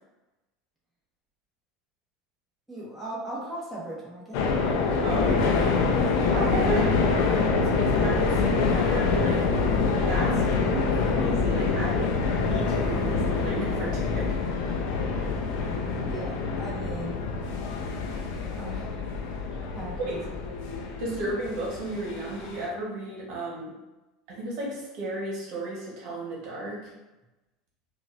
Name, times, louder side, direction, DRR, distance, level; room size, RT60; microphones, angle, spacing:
voice 1, 2.7-4.8 6.7-6.8 7.2-7.3 16.0-17.2 18.5-19.0 19.7-20.5 21.1-21.3, right 1 dB, 10° right, -7 dB, 1.4 m, -38 dB
sound 1, 4.3-22.7, left 4 dB, 70° left, 0.7 m, -26 dB
voice 2, 5.0-5.8 6.3-9.5 10.1-14.3 20.1-20.2 21.0-23.7 24.3-26.9, right 1 dB, 60° right, -4 dB, 1.3 m, -33 dB
4.7 x 2.6 x 2.6 m, 1.0 s
supercardioid pair, 105°, 0 cm